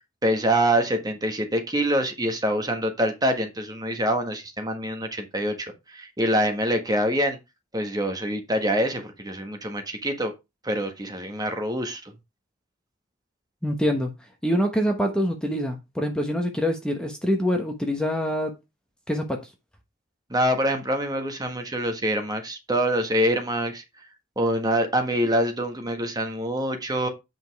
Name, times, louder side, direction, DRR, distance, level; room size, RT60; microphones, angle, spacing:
voice 1, 0.2-7.4 7.7-10.3 10.6-12.0 20.3-23.8 24.4-27.1, equal, 20° right, 1.5 m, -25 dB
voice 2, 13.6-14.1 14.4-18.5 19.1-19.4, equal, 5° left, 1.1 m, -25 dB
8.7 x 5.3 x 4.6 m
head